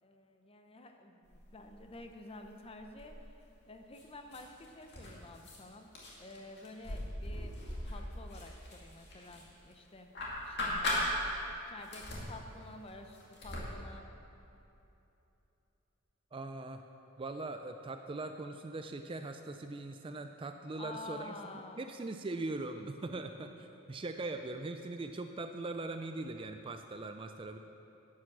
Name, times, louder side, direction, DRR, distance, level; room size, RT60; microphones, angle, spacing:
voice 1, 0.0-3.3 3.7-5.9 6.2-7.5 7.8-10.1 10.4-10.9 11.7-14.0 20.8-21.9 23.0-23.3, left 2 dB, 25° left, 5 dB, 0.7 m, -50 dB
sound 1, 1.3-2.0 2.3-3.5 3.9-5.6 5.9-9.7 10.1-11.5 11.8-13.7, left 1 dB, 50° left, 2.3 m, -39 dB
voice 2, 16.3-16.8 17.2-21.4 21.8-23.5 23.9-27.6, right 2 dB, 25° right, 7 dB, 0.4 m, -40 dB
11.5 x 8.6 x 6.1 m, 3.0 s
head